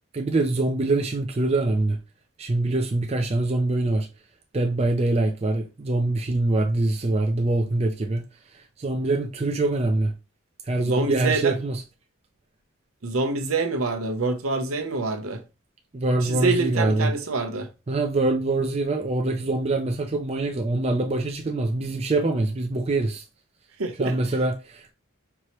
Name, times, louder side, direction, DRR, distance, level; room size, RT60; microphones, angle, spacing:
voice 1, 0.1-2.0 2.4-4.1 4.5-8.2 8.8-10.1 10.7-11.8 15.9-17.1 17.9-23.2 24.0-24.9, right 2 dB, 30° right, 0.4 m, -24 dB
voice 2, 10.8-11.5 13.0-15.4 16.2-17.7 23.8-24.2, right 3 dB, 75° right, 0.8 m, -26 dB
4.6 x 2.9 x 2.9 m
head